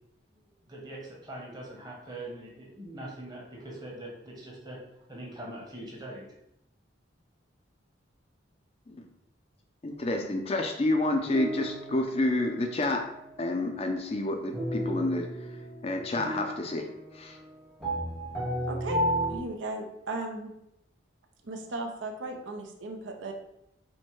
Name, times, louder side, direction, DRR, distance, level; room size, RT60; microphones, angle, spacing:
voice 1, 0.3-6.3, right 1 dB, 20° right, -3 dB, 1.0 m, -42 dB
voice 2, 9.8-13.0 13.4-15.3 15.8-16.9 17.1-17.4, left 2 dB, 30° left, 4 dB, 0.4 m, -29 dB
sound 1, 9.9-10.3 11.3-13.3 14.5-19.4, equal, ahead, 0.7 m, -34 dB
voice 3, 18.7-19.0 19.3-20.5 21.4-23.3, right 2 dB, 75° right, 2 dB, 0.6 m, -36 dB
4.4 x 2.1 x 4.4 m, 0.81 s
head